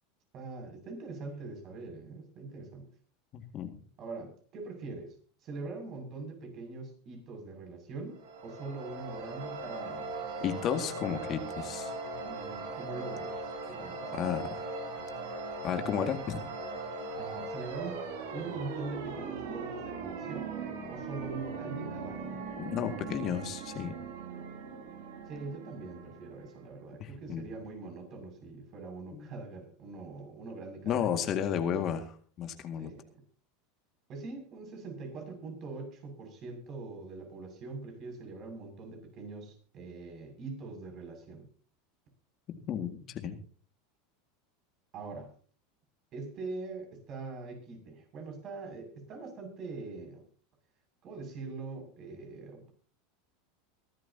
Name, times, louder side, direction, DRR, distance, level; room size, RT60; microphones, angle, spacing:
voice 1, 0.3-2.9 4.0-5.1 5.4-10.1 12.2-14.2 17.2-18.0 18.3-20.5 20.9-22.4 25.2-31.2 32.8-33.2 34.1-41.4 44.9-45.3 46.1-50.2 51.0-52.7, right 3 dB, 45° right, 3 dB, 6.8 m, -43 dB
voice 2, 3.3-3.7 10.4-11.9 14.1-14.6 15.6-16.5 22.6-23.9 27.0-27.5 29.1-29.3 30.9-32.9 42.7-43.4, left 8 dB, 45° left, 7 dB, 2.0 m, -33 dB
sound 1, 8.1-26.8, right 3 dB, 75° right, 5.0 m, -39 dB
24.0 x 12.0 x 2.9 m, 0.42 s
hypercardioid pair, 100°, 0 cm